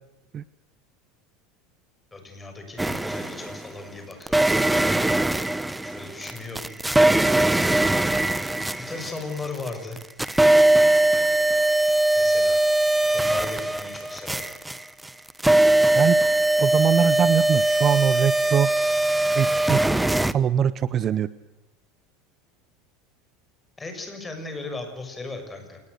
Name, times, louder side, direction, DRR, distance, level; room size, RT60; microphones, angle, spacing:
voice 1, 2.1-5.0 5.8-6.7 8.9-10.0 12.1-12.6 13.1-14.6 23.8-25.8, left 3 dB, 15° left, 5 dB, 6.4 m, -37 dB
sound 1, 2.8-3.7 4.3-9.7 10.0-20.3, right 1 dB, 5° right, 0.9 m, -21 dB
voice 2, 16.6-18.7 19.3-21.3, right 9 dB, 30° right, 16 dB, 0.8 m, -23 dB
28.5 x 19.5 x 6.7 m, 0.99 s
supercardioid pair, 140°, 0 cm